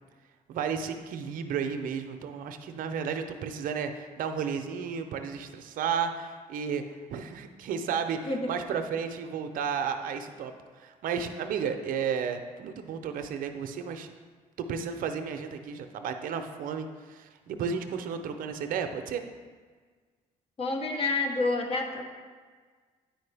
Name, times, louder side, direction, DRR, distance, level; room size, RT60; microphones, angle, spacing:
voice 1, 0.5-14.1 14.6-19.2, right 6 dB, 70° right, 7 dB, 0.6 m, -33 dB
voice 2, 20.6-22.0, left 3 dB, 40° left, 3 dB, 1.0 m, -28 dB
9.1 x 4.5 x 3.4 m, 1.5 s
cardioid pair, 75°, 15 cm